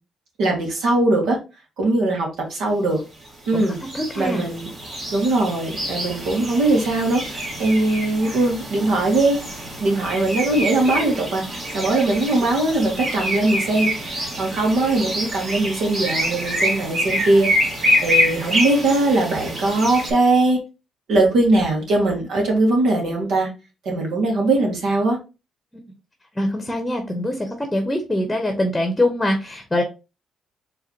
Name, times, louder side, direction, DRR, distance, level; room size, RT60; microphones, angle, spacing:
voice 1, 0.4-1.4 1.8-3.0 3.5-3.8 4.2-4.7 5.1-9.4 9.8-17.5 18.0-20.6 21.1-23.5 23.9-25.2, right 2 dB, 80° right, 1.9 m, -20 dB
sound 1, 3.2-20.1, equal, 45° right, 2.7 m, -26 dB
voice 2, 3.9-4.4 26.4-29.8, left 1 dB, 10° left, 1.0 m, -23 dB
4.8 x 3.3 x 2.9 m
cardioid pair, 90°, 0 cm